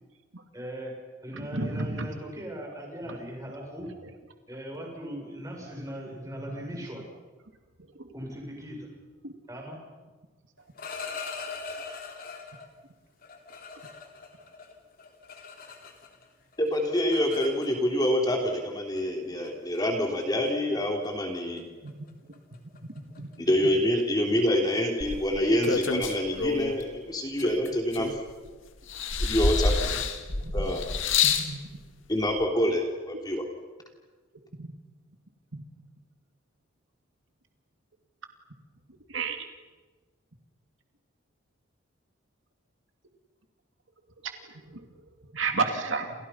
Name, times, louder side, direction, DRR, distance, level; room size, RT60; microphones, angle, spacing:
voice 1, 0.5-0.9 1.2-3.9 4.5-7.0 8.1-8.9 9.5-9.8, equal, 15° right, 0 dB, 7.4 m, -39 dB
voice 2, 1.5-2.1 9.2-9.3 21.8-21.9 23.2-23.3 30.4-30.5 31.2-31.6 34.6-34.7 39.1-39.5 45.3-46.1, right 4 dB, 75° right, 5 dB, 2.6 m, -30 dB
sound 1, 10.6-12.7 13.2-16.3 16.5-18.1 19.0-19.1 19.4-19.8 20.2-20.5 20.8-21.1 21.3-21.6 21.9-27.3, left 5 dB, 45° left, 3.5 m, -42 dB
voice 3, 16.6-21.6 23.4-28.1 29.2-30.0 30.5-30.8 32.1-33.4, equal, 20° left, 2 dB, 3.2 m, -26 dB
sound 2, 25.0-26.8 27.4-28.5 28.9-31.5 32.4-32.5, left 4 dB, 75° left, 2.1 m, -27 dB
29.5 x 29.5 x 5.7 m, 1.3 s
head